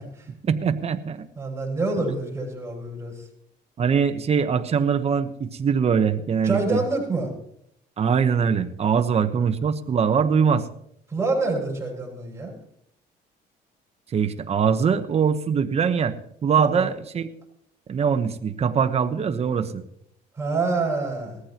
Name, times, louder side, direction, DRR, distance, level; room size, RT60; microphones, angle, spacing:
voice 1, 0.4-1.2 2.1-2.2 3.8-6.8 8.0-10.7 14.1-16.1 16.4-17.3 17.9-19.8, right 6 dB, 40° right, 9 dB, 1.1 m, -22 dB
voice 2, 1.4-3.3 6.4-7.3 11.1-12.5 16.6-16.9 20.3-21.4, right 3 dB, 15° right, -2 dB, 7.0 m, -27 dB
18.5 x 14.5 x 3.0 m, 0.73 s
cardioid pair, 110°, 17 cm